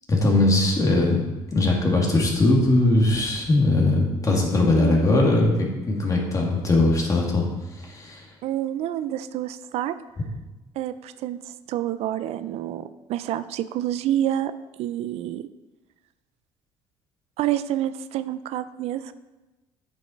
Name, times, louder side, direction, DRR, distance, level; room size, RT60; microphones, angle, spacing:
voice 1, 0.1-1.2 1.5-8.3, left 2 dB, 30° left, -1 dB, 2.3 m, -20 dB
voice 2, 8.4-10.0 10.8-14.5 14.8-15.5 17.4-19.1, right 12 dB, 75° right, 13 dB, 0.4 m, -28 dB
8.6 x 7.1 x 4.5 m, 1.1 s
cardioid pair, 95°, 11 cm